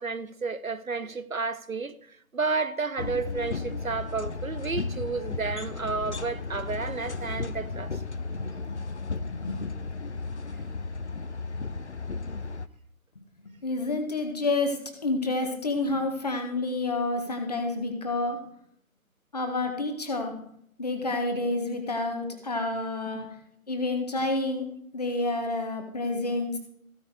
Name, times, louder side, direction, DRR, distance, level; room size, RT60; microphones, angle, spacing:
voice 1, 0.0-1.9 2.3-7.9 23.1-23.3, right 4 dB, 65° right, 1.1 m, -31 dB
sound 1, 3.0-12.7, left 4 dB, 50° left, 0.7 m, -34 dB
voice 2, 8.3-8.8 9.2-9.7 13.1-18.5 19.3-20.4 20.8-23.3 23.7-26.6, left 2 dB, 25° left, 1.6 m, -29 dB
15.5 x 9.4 x 4.9 m
figure-of-eight pair, 155°, 43 cm